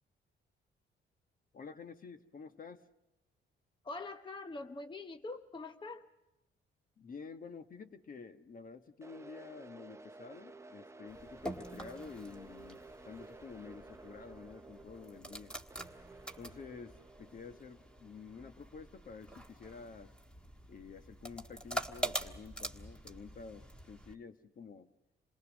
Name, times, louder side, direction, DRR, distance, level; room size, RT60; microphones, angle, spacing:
voice 1, 1.5-2.8 7.0-15.5 16.4-20.1 20.7-24.9, left 5 dB, 45° left, 1.3 m, -50 dB
voice 2, 3.8-6.1, left 3 dB, 25° left, 0.8 m, -44 dB
sound 1, 9.0-19.1, right 3 dB, 15° right, 0.7 m, -54 dB
sound 2, 11.1-24.1, right 1 dB, 5° left, 1.5 m, -45 dB
27.5 x 19.0 x 6.3 m
cardioid pair, 90°, 20 cm